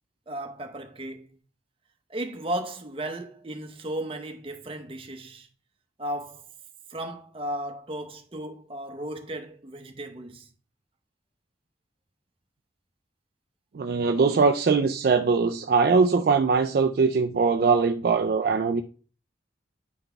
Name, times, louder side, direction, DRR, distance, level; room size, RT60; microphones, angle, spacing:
voice 1, 0.3-1.4 2.1-5.5 6.0-6.5 6.9-10.5, right 1 dB, 30° right, 0.8 m, -35 dB
voice 2, 13.7-18.8, right 4 dB, 55° right, 0.3 m, -21 dB
9.2 x 3.9 x 3.4 m
head